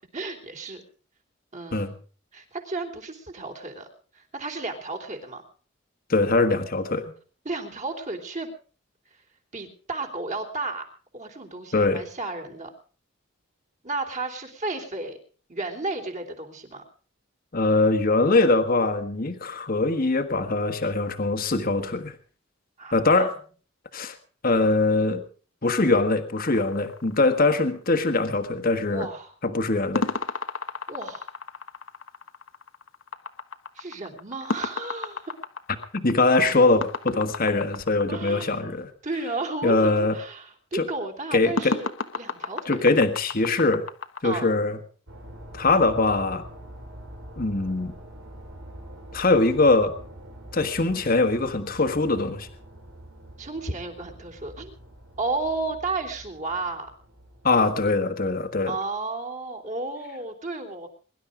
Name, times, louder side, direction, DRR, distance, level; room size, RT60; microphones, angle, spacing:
voice 1, 0.1-0.8 1.5-2.0 2.3-3.9 4.1-5.4 7.4-8.5 9.5-10.8 11.1-12.7 13.8-15.2 15.5-16.8 22.8-23.3 28.9-29.3 30.9-31.3 33.7-35.2 38.1-38.6 39.0-41.9 42.2-42.8 44.2-44.5 53.4-54.7 55.2-56.9 58.7-60.9, right 3 dB, 35° right, 3 dB, 3.3 m, -33 dB
voice 2, 6.1-7.0 11.7-12.0 17.5-22.1 22.9-23.3 23.9-24.1 24.4-25.2 25.6-29.1 29.4-30.1 35.9-38.9 39.6-40.2 40.7-40.9 41.3-41.8 42.6-43.8 44.2-44.8 45.5-46.4 47.4-47.9 49.1-49.9 50.5-52.5 57.4-58.7, left 3 dB, 45° left, 7 dB, 1.5 m, -22 dB
sound 1, 26.4-27.8 30.0-38.6 41.6-44.2, left 3 dB, 75° left, 1.3 m, -33 dB
sound 2, 45.1-58.6, right 1 dB, 85° right, 3.8 m, -45 dB
22.5 x 12.0 x 5.0 m, 0.42 s
head